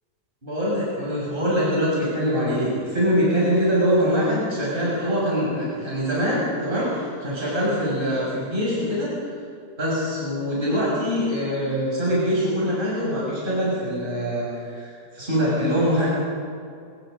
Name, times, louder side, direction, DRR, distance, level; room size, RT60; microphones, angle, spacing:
voice 1, 0.4-9.1 9.8-16.1, equal, 30° right, -7 dB, 7.0 m, -23 dB
26.5 x 21.0 x 5.3 m, 2.4 s
omnidirectional pair, 1.8 m